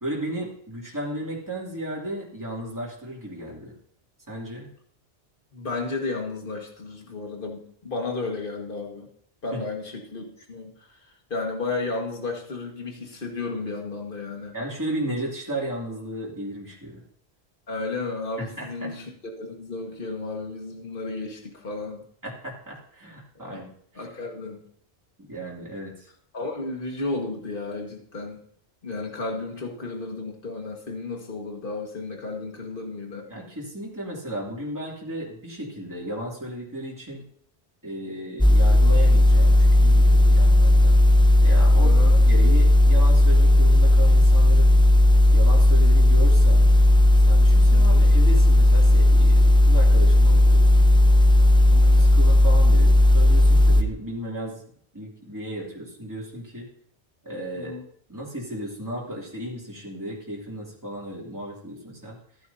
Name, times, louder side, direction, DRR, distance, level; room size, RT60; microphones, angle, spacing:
voice 1, 0.0-3.7 4.3-4.7 9.5-9.6 14.5-17.0 18.4-18.9 22.2-24.1 25.3-26.1 33.3-37.2 37.8-41.0 41.4-44.7 45.3-46.8 47.1-50.9 52.0-54.6 54.9-56.7 57.2-57.8 58.1-62.2, right 1 dB, 15° right, -4 dB, 2.7 m, -34 dB
voice 2, 5.5-9.1 9.4-14.5 17.7-22.0 23.4-23.6 24.0-24.6 26.3-28.4 28.8-33.3 40.3-40.4 41.8-42.2 47.7-48.0 50.3-50.4 51.7-52.0 57.6-57.8, left 3 dB, 55° left, 1 dB, 1.9 m, -33 dB
sound 1, 38.4-53.8, left 1 dB, 5° left, 0.5 m, -15 dB
15.0 x 9.5 x 2.8 m, 0.63 s
omnidirectional pair, 1.1 m